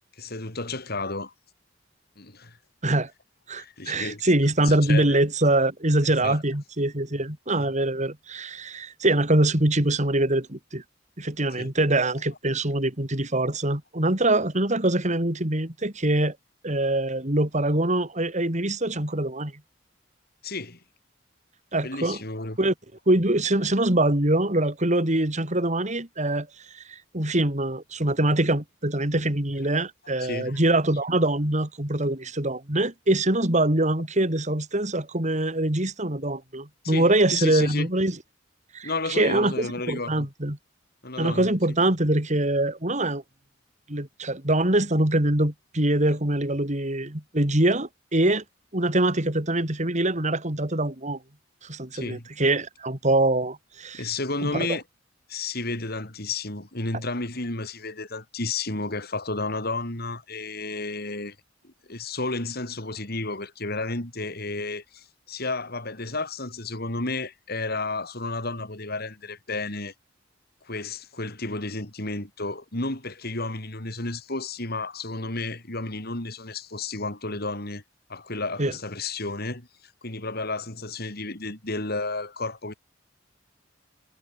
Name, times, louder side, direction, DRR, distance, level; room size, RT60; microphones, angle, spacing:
voice 1, 0.2-1.3 2.2-2.6 3.6-4.3 4.6-5.2 6.0-6.4 7.6-7.7 11.6-11.7 20.4-20.8 21.8-22.6 30.1-30.6 36.8-37.9 38.8-40.3 41.0-41.5 51.9-52.3 53.9-54.8 55.3-61.3 61.6-69.9 70.6-77.8 78.1-79.7 80.0-82.7, left 3 dB, 55° left, 5.0 m, -32 dB
voice 2, 3.5-10.8 11.2-16.4 16.6-19.5 21.7-22.2 22.6-22.7 23.1-26.5 26.7-38.2 38.7-40.6 41.2-43.2 43.9-48.4 48.7-51.2 51.6-54.0 54.4-54.7 78.6-78.7, right 1 dB, 40° right, 3.8 m, -24 dB
head